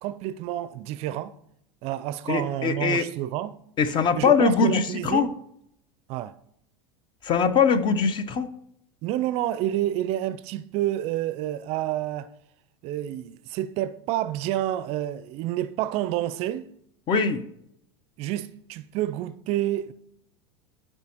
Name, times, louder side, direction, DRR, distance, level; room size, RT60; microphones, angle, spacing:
voice 1, 0.0-1.4 1.8-3.6 4.1-5.3 6.1-6.4 9.0-12.3 12.8-16.7 18.2-19.9, right 13 dB, 50° right, 0.4 m, -29 dB
voice 2, 2.3-3.1 3.8-5.3 7.2-8.5 17.1-17.4, left 5 dB, 35° left, 0.8 m, -22 dB
12.5 x 4.5 x 2.9 m
hypercardioid pair, 90°, 14 cm